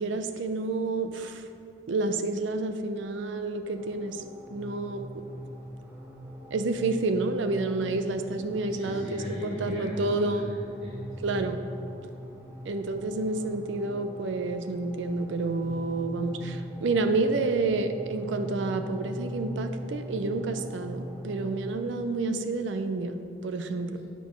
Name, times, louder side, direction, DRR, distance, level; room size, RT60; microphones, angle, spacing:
voice 1, 0.0-1.4 1.9-4.2 4.5-5.1 6.5-10.5 11.2-11.6 12.6-24.0, right 3 dB, 85° right, 8 dB, 0.4 m, -29 dB
sound 1, 3.8-21.7, equal, 10° right, 0.7 m, -41 dB
voice 2, 8.7-11.5, equal, 30° right, -10 dB, 1.5 m, -38 dB
8.3 x 3.8 x 5.9 m, 2.5 s
head